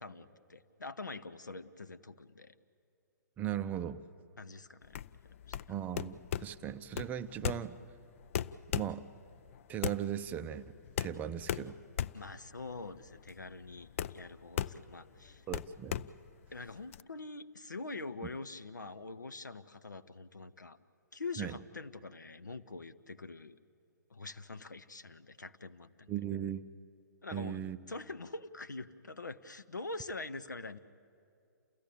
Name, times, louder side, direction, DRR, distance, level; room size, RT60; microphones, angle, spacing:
voice 1, 0.0-2.5 4.4-4.9 5.5-5.6 12.1-15.4 16.5-20.8 21.1-23.6 24.1-26.1 27.2-30.8, left 3 dB, 90° left, 12 dB, 0.8 m, -44 dB
voice 2, 3.4-4.0 5.7-7.8 8.7-9.0 9.7-10.7 11.0-11.8 15.5-16.1 18.2-18.3 21.4-21.6 26.1-26.7 27.3-27.8, right 10 dB, 15° right, 11 dB, 0.6 m, -38 dB
sound 1, 4.8-17.0, left 10 dB, 45° left, 0.5 m, -38 dB
28.5 x 15.5 x 8.5 m, 2.5 s
figure-of-eight pair, 130°, 10 cm